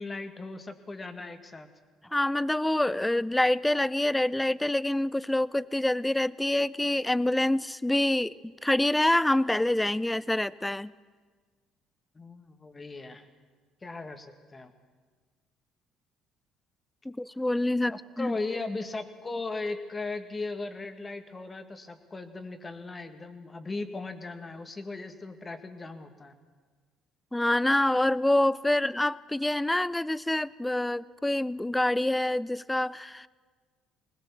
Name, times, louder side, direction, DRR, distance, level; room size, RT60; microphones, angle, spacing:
voice 1, 0.0-1.7 12.1-13.3 13.8-14.7 17.9-26.3, left 3 dB, 25° left, 7 dB, 2.0 m, -37 dB
voice 2, 2.1-10.9 17.1-18.4 27.3-33.3, left 1 dB, 10° left, 19 dB, 0.6 m, -26 dB
20.0 x 20.0 x 7.2 m, 1.5 s
hypercardioid pair, 60°, 0 cm